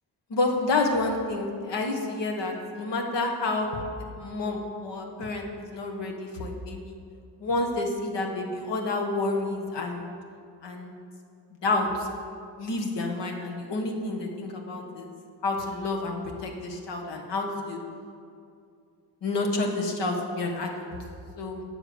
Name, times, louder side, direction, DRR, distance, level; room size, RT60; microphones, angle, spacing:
voice 1, 0.3-3.7 4.2-7.0 7.4-10.1 10.6-10.9 11.6-12.1 12.6-15.1 15.4-17.8 19.2-20.9 21.4-21.6, left 2 dB, 75° left, 2 dB, 1.5 m, -29 dB
8.5 x 7.5 x 6.6 m, 2.5 s
cardioid pair, 65°, 43 cm